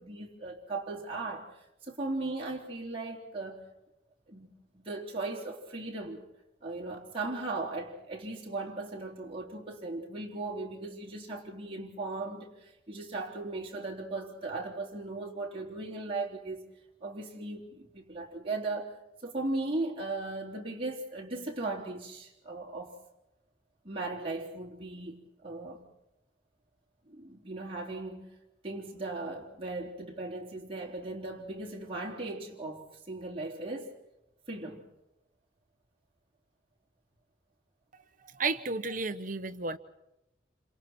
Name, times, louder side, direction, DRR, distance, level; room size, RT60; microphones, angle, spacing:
voice 1, 0.0-3.6 4.3-4.5 4.7-6.3 6.6-16.7 17.0-23.0 23.8-25.2 25.4-25.8 27.1-28.2 28.6-33.9 34.5-34.8, right 2 dB, 30° right, 3.7 m, -37 dB
voice 2, 38.4-39.8, right 3 dB, 45° right, 1.1 m, -32 dB
28.5 x 26.5 x 4.5 m
head